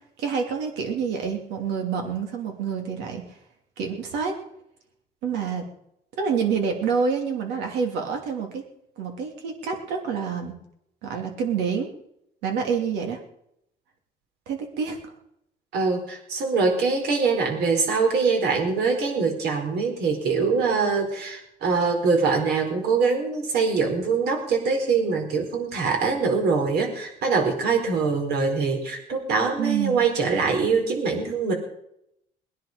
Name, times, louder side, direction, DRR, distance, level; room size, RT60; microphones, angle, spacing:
voice 1, 0.2-3.2 3.8-4.3 5.2-5.6 6.2-8.6 9.0-10.5 11.0-11.9 12.4-13.2 14.5-15.1 29.6-30.0, right 6 dB, 90° right, 3 dB, 3.0 m, -27 dB
voice 2, 15.7-31.5, right 4 dB, 75° right, 2 dB, 4.4 m, -23 dB
20.5 x 10.5 x 5.2 m, 0.77 s
cardioid pair, 110°, 17 cm